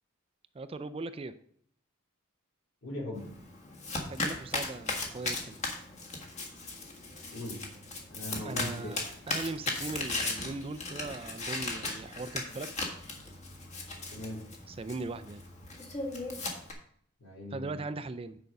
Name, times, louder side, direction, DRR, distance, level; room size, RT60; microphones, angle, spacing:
voice 1, 0.5-1.3 4.1-5.6 8.3-12.8 14.7-15.4 17.5-18.4, right 3 dB, 25° right, 12 dB, 0.3 m, -39 dB
voice 2, 2.8-3.3 7.3-7.6 8.1-8.9 14.1-14.4 17.2-17.8, left 1 dB, 70° left, -4 dB, 4.1 m, -39 dB
Domestic sounds home sounds, 3.2-16.7, left 3 dB, 35° left, 1.5 m, -37 dB
9.3 x 5.1 x 5.3 m, 0.64 s
head